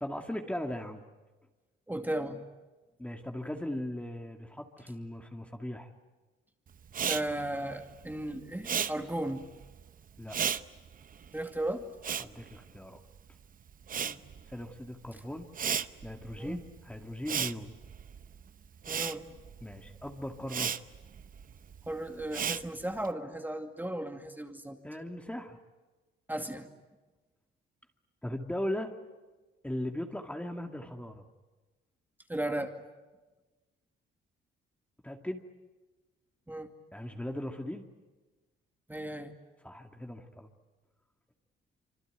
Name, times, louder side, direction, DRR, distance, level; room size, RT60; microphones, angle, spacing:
voice 1, 0.0-1.0 3.0-5.9 10.2-10.4 12.2-13.0 14.5-15.5 16.0-17.7 19.6-20.7 24.8-25.6 28.2-28.9 29.6-31.2 35.0-35.4 36.9-37.8 39.6-40.5, left 1 dB, 5° left, 3 dB, 2.3 m, -38 dB
voice 2, 1.9-2.4 7.1-9.4 11.3-11.9 14.0-14.2 16.4-16.6 17.3-17.5 18.9-19.3 21.9-24.8 26.3-26.7 32.3-32.7 36.5-36.7 38.9-39.4, right 1 dB, 10° right, 4 dB, 2.4 m, -35 dB
Respiratory sounds, 6.9-13.3 13.6-23.1, right 7 dB, 45° right, 0.9 m, -36 dB
26.0 x 25.0 x 9.3 m, 1.2 s
cardioid pair, 90°, 20 cm